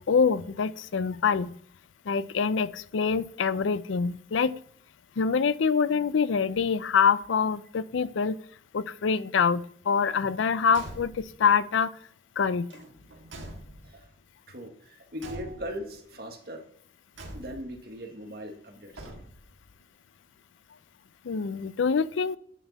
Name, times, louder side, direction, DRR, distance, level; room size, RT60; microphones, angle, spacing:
voice 1, 0.1-1.5 2.1-4.5 5.2-8.4 8.7-11.1 11.4-11.9 12.4-12.7 21.3-22.4, left 6 dB, 85° left, 17 dB, 0.5 m, -25 dB
Car / Truck / Slam, 10.7-11.4 12.7-14.1 15.2-16.0 17.2-17.8 18.9-19.6, right 1 dB, 90° right, 1.8 m, -44 dB
voice 2, 14.5-16.6 17.3-19.1, equal, 55° right, 4 dB, 1.5 m, -39 dB
10.0 x 6.2 x 4.1 m, 0.62 s
head